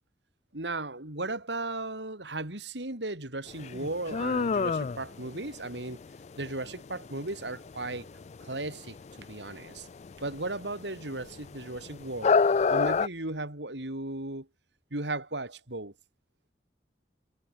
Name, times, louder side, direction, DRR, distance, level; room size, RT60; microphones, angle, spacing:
voice 1, 0.5-6.0 6.4-8.1 8.4-9.9 10.2-12.4 12.7-14.5 14.9-15.9, right 2 dB, 85° right, 3.9 m, -36 dB
sound 1, 3.5-13.1, left 5 dB, 40° left, 0.4 m, -29 dB
head